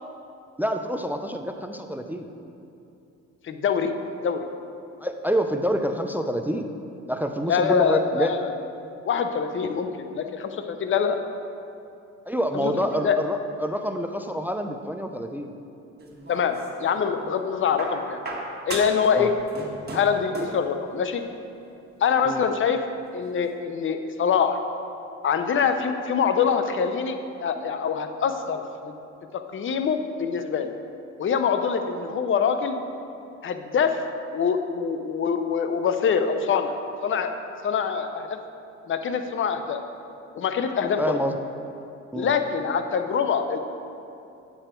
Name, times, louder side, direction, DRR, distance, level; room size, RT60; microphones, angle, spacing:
voice 1, 0.6-2.3 5.0-6.7 7.1-8.3 12.3-15.6 19.2-19.3 22.2-22.4 41.0-41.3 42.1-42.3, equal, 5° right, 6 dB, 0.4 m, -27 dB
voice 2, 3.4-3.9 4.2-4.4 7.5-8.5 9.0-11.2 12.5-12.7 13.0-13.2 16.3-18.2 18.7-19.3 19.9-21.2 22.0-22.8 23.1-24.6 25.2-28.6 29.3-30.7 31.2-32.8 33.4-34.0 34.3-36.7 37.0-37.3 37.6-38.4 38.9-39.8 40.3-41.2 42.1-43.6, left 6 dB, 40° left, 7 dB, 0.6 m, -24 dB
sound 1, 16.0-17.0 17.8-19.1 19.4-20.6 21.7-21.8, right 3 dB, 35° right, 1.5 m, -35 dB
8.9 x 7.0 x 4.4 m, 2.7 s
cardioid pair, 90°, 30 cm